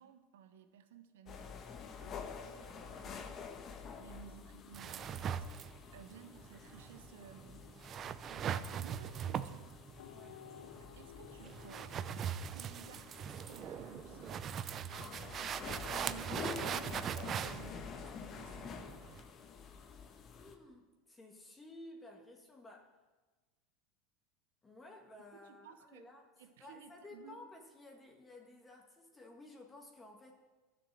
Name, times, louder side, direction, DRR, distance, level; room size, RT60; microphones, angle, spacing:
voice 1, 0.0-3.6 4.0-7.7 8.3-9.7 10.1-10.3 10.7-12.1 12.5-14.5 15.4-18.9 25.3-26.1 26.4-27.5, right 8 dB, 80° right, 9 dB, 1.1 m, -56 dB
sound 1, 1.3-20.6, left 6 dB, 35° left, 1.2 m, -49 dB
sound 2, 4.7-19.2, right 8 dB, 35° right, 0.5 m, -41 dB
sound 3, 10.0-14.0, left 10 dB, 85° left, 0.4 m, -57 dB
voice 2, 10.1-10.4 20.4-23.0 24.6-26.3 26.6-30.4, left 2 dB, 15° left, 1 dB, 1.7 m, -54 dB
11.5 x 6.7 x 7.5 m, 1.2 s
hypercardioid pair, 105°, 0 cm